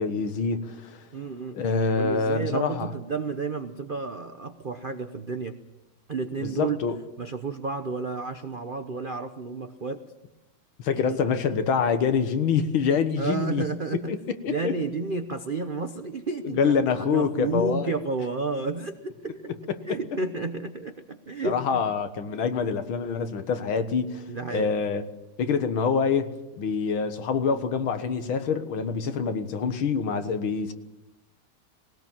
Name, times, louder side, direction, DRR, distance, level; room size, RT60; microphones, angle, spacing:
voice 1, 0.0-1.1 1.5-2.9 6.4-7.0 10.8-13.6 14.1-14.2 14.4-14.7 16.4-17.9 19.9-20.0 21.4-25.0 25.4-30.7, left 6 dB, 75° left, 9 dB, 2.2 m, -26 dB
voice 2, 1.1-1.6 1.9-5.6 6.1-6.8 7.2-10.0 10.9-11.4 13.2-14.1 14.5-16.8 17.1-19.5 19.9-21.8 24.3-24.7, right 4 dB, 55° right, 8 dB, 0.5 m, -31 dB
20.5 x 18.5 x 7.3 m, 0.97 s
omnidirectional pair, 2.3 m